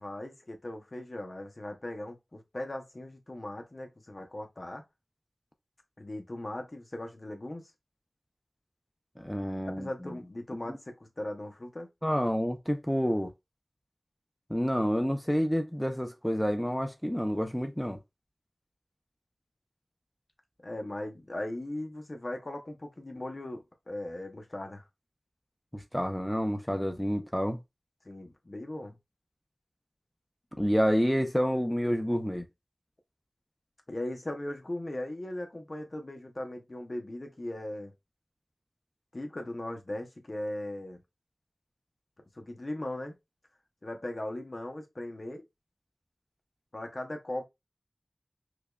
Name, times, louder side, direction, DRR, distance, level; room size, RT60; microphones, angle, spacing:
voice 1, 0.0-4.8 6.0-7.6 9.6-11.9 20.6-24.8 28.0-29.0 33.9-37.9 39.1-41.0 42.4-43.1 43.8-45.4 46.7-47.5, left 1 dB, 45° left, 0.7 m, -38 dB
voice 2, 9.2-10.1 10.7-10.8 12.0-13.3 14.5-18.0 25.7-27.6 30.6-32.4, equal, 5° left, 0.5 m, -29 dB
4.8 x 2.2 x 2.3 m
wide cardioid pair, 55°, 0 cm